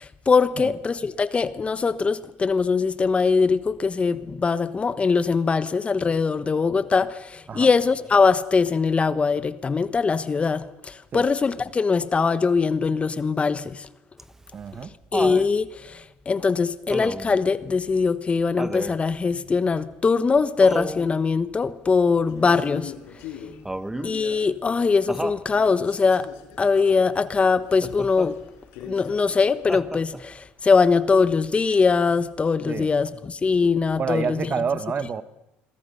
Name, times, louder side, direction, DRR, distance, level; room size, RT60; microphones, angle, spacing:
voice 1, 0.0-13.9 15.1-22.9 24.0-26.3 26.6-28.4 28.8-34.5, left 4 dB, 25° left, 1.1 m, -22 dB
Laughter, 14.2-15.5 16.9-17.4 18.6-19.0 20.6-21.1 23.7-24.2 25.1-25.5 27.8-28.3 29.7-30.3 31.7-31.8, right 1 dB, 10° right, 1.1 m, -31 dB
voice 2, 14.5-14.9 32.7-32.9 34.0-35.2, right 6 dB, 40° right, 1.4 m, -28 dB
Male speech man speaking, 22.3-25.3 25.5-29.7, left 8 dB, 75° left, 5.2 m, -43 dB
28.0 x 22.5 x 5.6 m
supercardioid pair, 85°, 5 cm